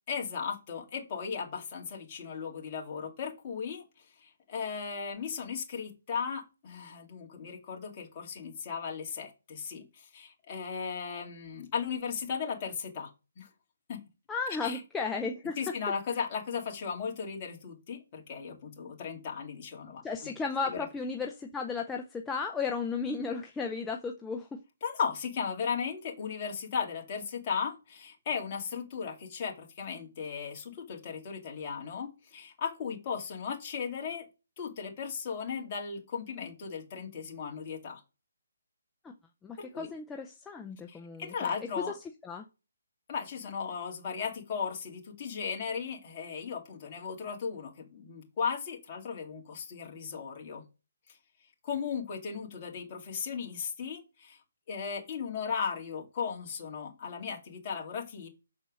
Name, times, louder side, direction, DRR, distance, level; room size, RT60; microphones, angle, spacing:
voice 1, 0.1-13.1 13.4-13.5 13.9-14.0 14.6-14.8 15.6-20.3 20.7-20.9 24.8-34.3 34.6-38.0 39.6-39.9 40.9-41.9 43.1-50.7 51.1-51.2 51.6-54.4 54.7-58.3, left 6 dB, 30° left, 0 dB, 2.2 m, -36 dB
voice 2, 14.3-15.6 20.0-24.5 39.0-39.1 39.4-41.9 42.2-42.4, left 5 dB, 5° left, 2 dB, 0.5 m, -34 dB
6.8 x 4.3 x 6.2 m, 0.31 s
hypercardioid pair, 165°, 0 cm